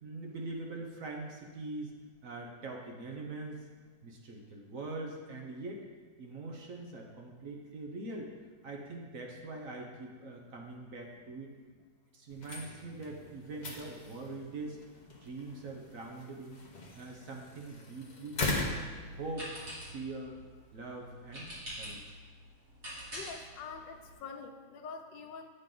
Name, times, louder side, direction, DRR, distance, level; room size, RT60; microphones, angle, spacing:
voice 1, 0.0-1.9 2.2-3.7 4.0-5.8 6.2-8.3 8.6-11.5 12.1-14.8 15.2-16.6 16.9-18.8 19.2-19.5 19.9-20.4 20.7-22.2, right 2 dB, 55° right, 0 dB, 1.1 m, -43 dB
sound 1, 12.3-19.8, left 2 dB, 40° left, 0.7 m, -40 dB
sound 2, 18.5-24.1, equal, 40° right, 3.0 m, -46 dB
voice 2, 23.1-25.5, left 5 dB, 90° left, 6 dB, 1.4 m, -45 dB
8.7 x 6.6 x 3.8 m, 1.5 s
omnidirectional pair, 1.9 m